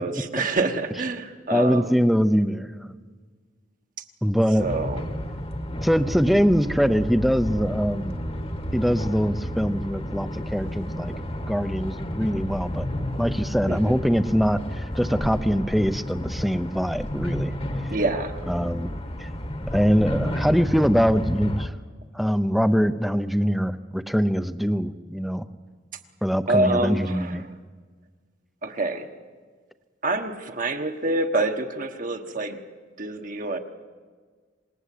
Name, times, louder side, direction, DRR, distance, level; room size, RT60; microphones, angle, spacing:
voice 1, 0.0-2.0 4.6-5.0 13.7-14.0 17.9-18.4 26.5-27.4 28.6-29.1 30.0-32.6 33.0-33.6, right 2 dB, 45° right, 5 dB, 1.3 m, -26 dB
voice 2, 1.5-3.0 4.2-4.7 5.8-8.2 8.7-11.1 11.5-12.9 13.2-17.5 18.5-18.9 19.2-19.3 19.7-21.7 22.1-25.4 26.2-27.5, equal, ahead, 12 dB, 0.7 m, -23 dB
sound 1, 4.6-21.7, equal, 30° left, 1.3 m, -31 dB
27.0 x 19.5 x 8.4 m, 1.5 s
head